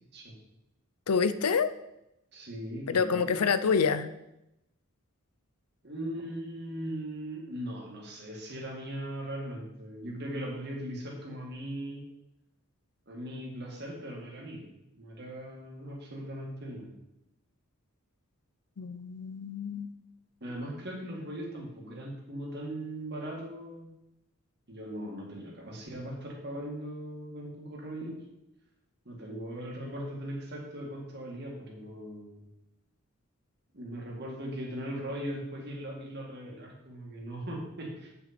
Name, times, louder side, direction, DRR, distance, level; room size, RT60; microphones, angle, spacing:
voice 1, 1.1-1.7 2.9-4.1 18.8-19.9, left 6 dB, 90° left, 12 dB, 0.6 m, -27 dB
voice 2, 2.3-3.5 5.8-12.0 13.1-14.7 14.9-16.9 20.4-23.9 24.7-28.2 29.1-32.5 33.7-38.1, right 1 dB, 50° right, -1 dB, 2.1 m, -39 dB
9.0 x 6.1 x 4.4 m, 0.88 s
head